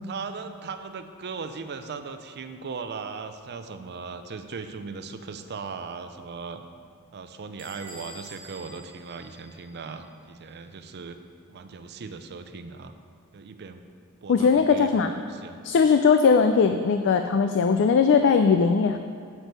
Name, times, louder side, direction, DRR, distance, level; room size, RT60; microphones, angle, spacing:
voice 1, 0.1-6.6 7.1-11.2 11.5-12.9 13.3-13.8 14.2-15.6, right 5 dB, 50° right, 9 dB, 0.5 m, -38 dB
Bell / Squeak, 7.6-10.1, right 1 dB, 25° right, 1.4 m, -47 dB
voice 2, 14.3-15.1 15.6-19.0, left 5 dB, 55° left, 7 dB, 0.3 m, -19 dB
8.1 x 6.2 x 5.2 m, 2.2 s
head